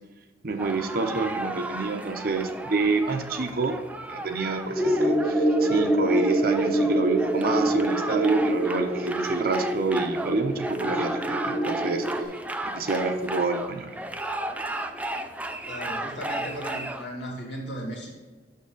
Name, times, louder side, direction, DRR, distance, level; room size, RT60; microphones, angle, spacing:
voice 1, 0.4-3.8 4.1-12.0 12.6-13.9, right 3 dB, 55° right, 6 dB, 0.7 m, -27 dB
sound 1, 0.6-17.0, right 1 dB, 10° right, 0.3 m, -34 dB
sound 2, 4.7-12.2, right 1 dB, 10° left, 0.8 m, -26 dB
voice 2, 15.7-18.1, equal, 75° left, -1 dB, 2.2 m, -36 dB
6.5 x 6.4 x 3.8 m, 1.3 s
head